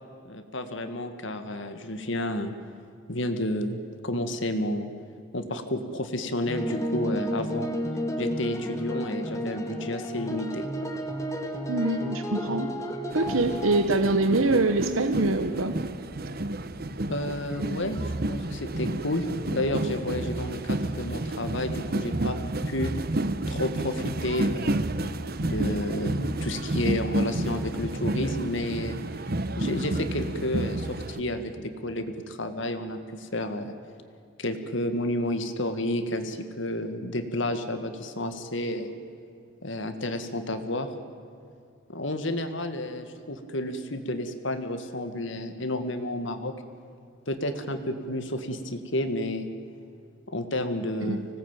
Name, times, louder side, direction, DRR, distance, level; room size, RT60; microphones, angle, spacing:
voice 1, 0.3-2.5 3.1-4.9 5.3-7.7 8.2-10.7 17.1-18.0 18.3-22.4 22.7-22.9 23.5-24.8 25.4-29.0 29.6-33.7 34.4-38.9 39.6-40.9 41.9-46.5 47.3-49.5 50.3-51.3, left 1 dB, 65° left, 8 dB, 2.0 m, -31 dB
sound 1, 6.5-13.8, equal, 15° left, 2.1 m, -32 dB
voice 2, 11.7-12.7 13.1-15.8 51.0-51.2, right 2 dB, 80° right, 8 dB, 1.1 m, -24 dB
sound 2, 13.1-31.2, right 1 dB, 45° right, 1.0 m, -30 dB
25.5 x 18.5 x 9.1 m, 2.4 s
head